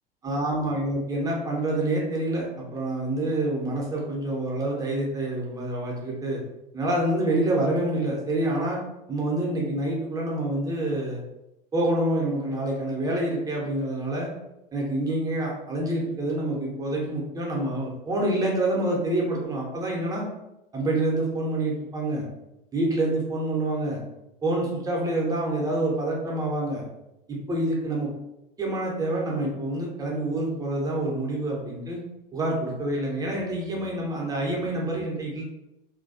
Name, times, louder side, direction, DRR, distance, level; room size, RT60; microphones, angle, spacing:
voice 1, 0.2-6.4 6.7-8.8 9.1-11.2 11.7-14.3 14.7-20.2 20.7-22.3 22.7-24.0 24.4-26.8 27.3-28.1 28.6-32.0 32.3-35.4, right 1 dB, 10° right, -2 dB, 0.6 m, -27 dB
2.5 x 2.2 x 2.5 m, 0.91 s
figure-of-eight pair, 85°, 29 cm